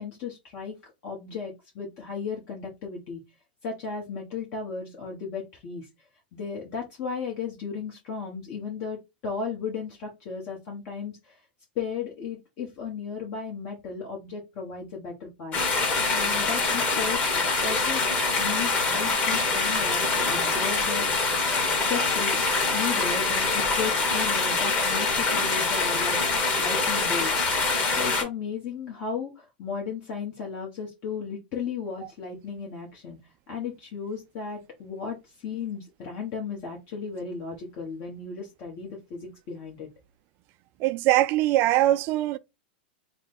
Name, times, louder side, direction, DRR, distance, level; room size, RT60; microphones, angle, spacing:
voice 1, 0.0-3.2 3.6-5.9 6.3-11.4 11.7-15.6 16.1-21.4 21.7-22.4 22.7-26.2 26.6-27.6 27.9-33.2 33.5-39.9, left 5 dB, 50° left, 1.1 m, -35 dB
sound 1, 15.5-28.2, left 3 dB, 30° left, 1.5 m, -25 dB
voice 2, 40.8-42.4, right 15 dB, 45° right, 0.3 m, -22 dB
3.1 x 2.2 x 4.1 m
hypercardioid pair, 105°, 5 cm